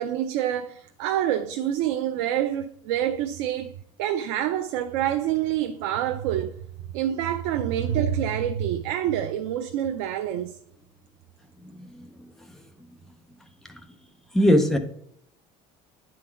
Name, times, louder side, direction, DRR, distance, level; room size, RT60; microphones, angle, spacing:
voice 1, 0.0-3.7 4.0-6.6 6.9-10.6, right 11 dB, 85° right, 0.5 m, -27 dB
voice 2, 11.7-12.6 13.7-13.8 14.3-14.8, equal, 5° left, 0.6 m, -23 dB
9.7 x 3.9 x 4.4 m
cardioid pair, 180°, 14 cm